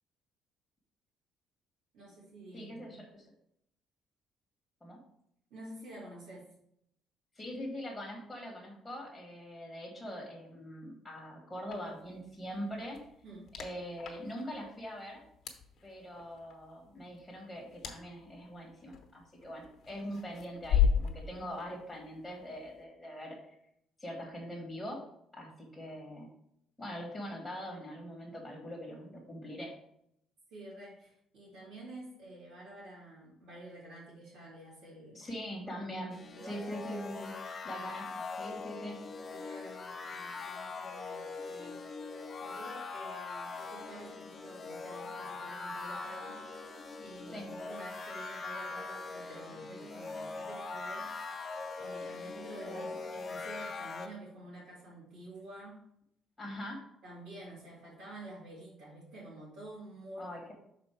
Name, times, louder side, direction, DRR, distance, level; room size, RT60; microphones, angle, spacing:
voice 1, 1.9-3.0 5.5-6.5 13.2-13.5 30.5-35.3 36.3-36.8 37.8-37.9 39.3-41.8 42.4-51.1 51.7-55.8 57.0-60.5, right 1 dB, 85° right, -10 dB, 2.5 m, -49 dB
voice 2, 2.5-3.3 4.8-5.0 7.3-13.0 13.6-15.2 15.8-23.5 24.0-25.0 25.3-26.3 26.8-29.7 35.1-36.2 36.4-37.3 37.6-39.0 47.3-47.5 52.7-52.9 56.4-56.8 60.2-60.5, equal, 5° left, -2 dB, 1.7 m, -42 dB
sound 1, 11.7-22.8, left 8 dB, 55° left, 1.0 m, -37 dB
sound 2, 36.1-54.1, left 4 dB, 25° left, 0.7 m, -42 dB
6.3 x 4.2 x 4.5 m, 0.73 s
cardioid pair, 135°, 0 cm